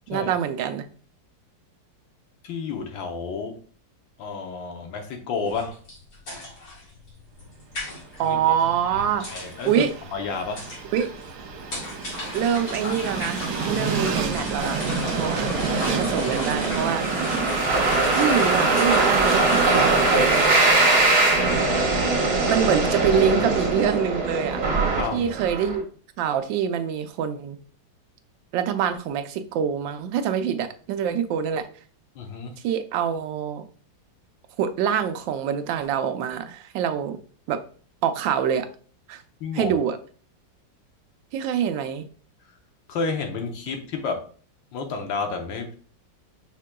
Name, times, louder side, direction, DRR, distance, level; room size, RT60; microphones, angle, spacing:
voice 1, 0.1-0.8 8.2-9.3 9.6-9.9 10.9-11.1 12.3-14.8 15.2-17.1 18.2-20.7 22.5-24.6 25.1-25.9 26.2-27.6 28.5-31.7 32.6-33.6 34.6-37.2 37.5-37.6 38.0-38.7 39.1-39.2 39.5-40.0 41.3-42.1, right 8 dB, 85° right, 9 dB, 1.3 m, -25 dB
voice 2, 2.4-3.6 4.2-5.8 8.2-8.4 8.7-10.7 25.0-25.3 32.1-32.6 39.4-39.7 42.9-44.2 44.7-45.7, left 4 dB, 85° left, 4 dB, 1.6 m, -31 dB
sound 1, 5.5-20.9, left 2 dB, 55° left, 2.4 m, -36 dB
Train, 8.1-24.1, right 5 dB, 70° right, 1.2 m, -32 dB
sound 2, 14.6-25.7, right 3 dB, 55° right, 1.6 m, -22 dB
5.7 x 3.7 x 2.2 m, 0.43 s
omnidirectional pair, 2.0 m